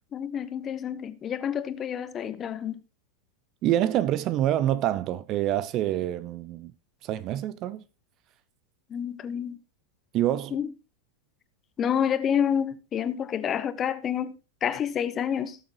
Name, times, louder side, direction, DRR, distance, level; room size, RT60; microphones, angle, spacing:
voice 1, 0.1-2.8 8.9-9.6 10.5-10.7 11.8-14.3 14.6-15.6, left 8 dB, 25° left, 1.0 m, -28 dB
voice 2, 3.6-6.7 7.0-7.8 10.1-10.6, right 12 dB, 35° right, 0.6 m, -26 dB
18.0 x 7.2 x 3.0 m
figure-of-eight pair, 90°, 0 cm